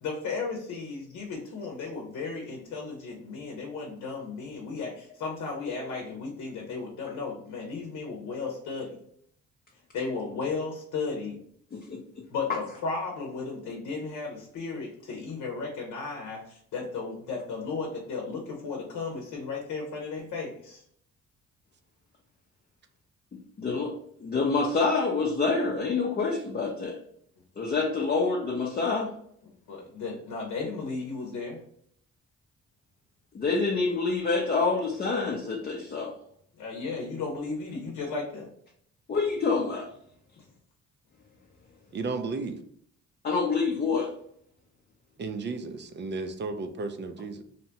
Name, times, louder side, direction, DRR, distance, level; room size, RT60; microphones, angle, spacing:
voice 1, 0.0-9.0 9.9-11.4 12.3-20.8 29.7-31.6 36.5-38.5, left 4 dB, 75° left, -1 dB, 0.8 m, -35 dB
voice 2, 11.7-12.0 23.6-23.9 24.2-27.0 27.6-29.1 33.3-36.1 39.1-39.9 43.2-44.1, left 4 dB, 30° left, -1 dB, 0.5 m, -27 dB
voice 3, 41.9-42.6 45.2-47.4, right 3 dB, 35° right, 7 dB, 0.4 m, -33 dB
2.8 x 2.1 x 2.8 m, 0.66 s
cardioid pair, 90°, 30 cm